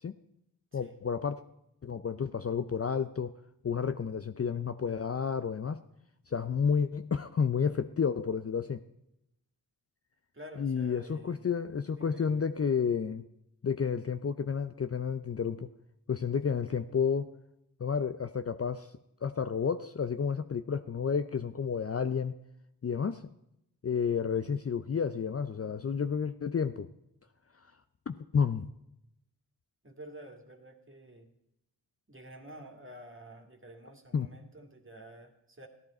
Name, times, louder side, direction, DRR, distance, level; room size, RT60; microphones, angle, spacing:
voice 1, 0.7-1.4 1.8-3.4 3.6-5.8 6.3-8.8 10.6-13.2 13.6-15.7 16.1-17.3 17.8-18.9 19.2-22.4 22.8-23.3 23.8-26.9 28.1-28.7 34.1-34.3, left 6 dB, 35° left, 10 dB, 0.6 m, -31 dB
voice 2, 10.3-11.4 11.9-12.4 16.5-16.9 29.8-31.3 32.1-35.7, right 1 dB, 30° right, 4 dB, 2.3 m, -50 dB
15.0 x 10.5 x 4.3 m, 0.82 s
supercardioid pair, 40°, 43 cm